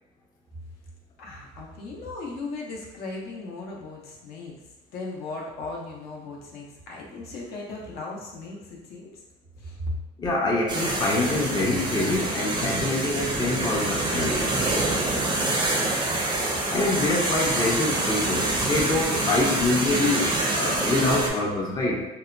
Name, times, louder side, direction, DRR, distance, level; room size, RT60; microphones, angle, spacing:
voice 1, 1.2-4.5 4.9-9.2 9.6-9.9 14.9-16.1, left 2 dB, 70° left, -2 dB, 0.6 m, -38 dB
voice 2, 10.2-14.5 16.1-16.3 16.7-22.1, left 2 dB, 25° left, -2 dB, 0.5 m, -25 dB
sound 1, 10.7-21.3, right 2 dB, 25° right, 0.5 m, -26 dB
2.7 x 2.1 x 2.4 m, 0.99 s
cardioid pair, 110°, 17 cm